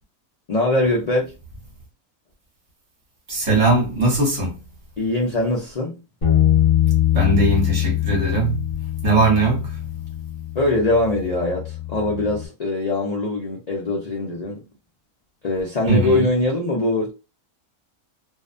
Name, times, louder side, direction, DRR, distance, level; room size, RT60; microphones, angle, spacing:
voice 1, 0.5-1.3 5.0-6.0 10.5-14.7 15.4-17.1, left 2 dB, 60° left, 0.4 m, -22 dB
voice 2, 3.3-4.6 7.1-9.9 15.9-16.2, right 3 dB, 55° right, 1.3 m, -20 dB
Bass guitar, 6.2-12.5, left 12 dB, 35° left, 1.2 m, -22 dB
2.7 x 2.1 x 2.4 m
omnidirectional pair, 1.5 m